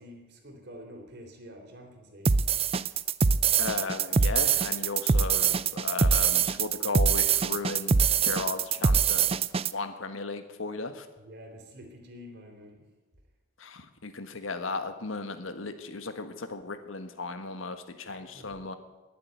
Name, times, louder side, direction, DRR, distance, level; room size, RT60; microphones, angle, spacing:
voice 1, 0.0-2.4 11.2-12.8 18.1-18.6, equal, 55° right, 3 dB, 3.5 m, -48 dB
sound 1, 2.3-9.7, right 6 dB, 30° right, 0.4 m, -24 dB
voice 2, 3.6-9.3 9.7-11.0 13.6-18.7, left 3 dB, 85° left, 9 dB, 1.5 m, -36 dB
20.0 x 7.8 x 9.3 m, 1.2 s
head